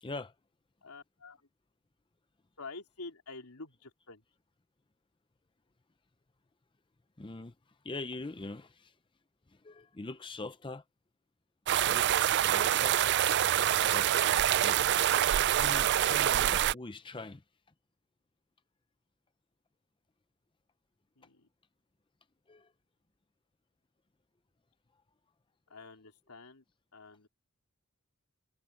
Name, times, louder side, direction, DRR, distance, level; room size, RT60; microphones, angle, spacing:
voice 1, 0.0-0.3 7.2-7.5 7.8-8.9 9.5-10.8 11.8-12.1 12.4-13.0 13.9-14.1 14.6-14.8 15.4-17.4 22.5-22.7, left 2 dB, 20° left, 0.6 m, -42 dB
voice 2, 0.8-1.4 2.6-4.2 21.2-21.5 25.7-26.6 26.9-27.3, left 3 dB, 90° left, 3.2 m, -48 dB
sound 1, 11.7-16.7, right 11 dB, 50° right, 0.4 m, -26 dB
head